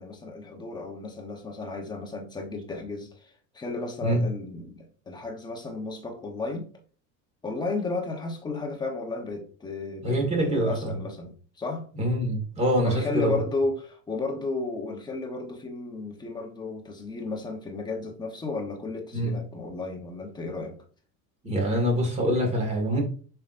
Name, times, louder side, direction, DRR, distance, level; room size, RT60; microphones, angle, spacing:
voice 1, 0.0-6.7 7.4-11.9 12.8-20.8, left 3 dB, 10° left, 1.0 m, -33 dB
voice 2, 10.0-10.7 11.9-13.4 19.1-19.3 21.4-23.0, equal, 15° right, 1.9 m, -25 dB
7.1 x 5.8 x 2.6 m
cardioid pair, 175°, 37 cm